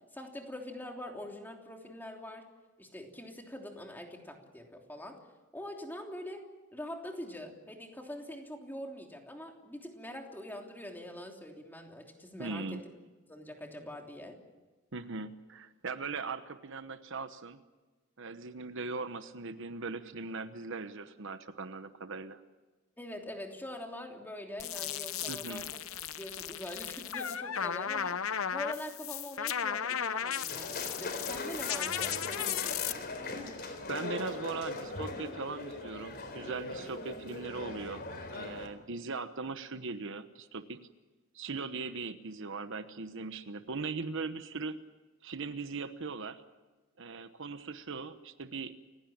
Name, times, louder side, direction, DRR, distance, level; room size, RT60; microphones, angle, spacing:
voice 1, 0.1-2.5 2.8-5.2 5.5-6.4 6.7-12.8 13.3-14.4 23.0-25.8 26.2-33.0, left 1 dB, 10° left, 2 dB, 3.1 m, -44 dB
voice 2, 12.4-12.8 14.9-17.6 18.2-22.4 25.3-25.6 33.9-38.0 38.3-40.8 41.3-44.8 45.2-46.4 47.0-48.7, right 4 dB, 65° right, 10 dB, 1.1 m, -39 dB
sound 1, 24.6-32.9, left 9 dB, 75° left, 0.9 m, -35 dB
sound 2, 30.5-38.7, left 2 dB, 50° left, 3.9 m, -40 dB
29.5 x 16.5 x 8.7 m, 1.3 s
head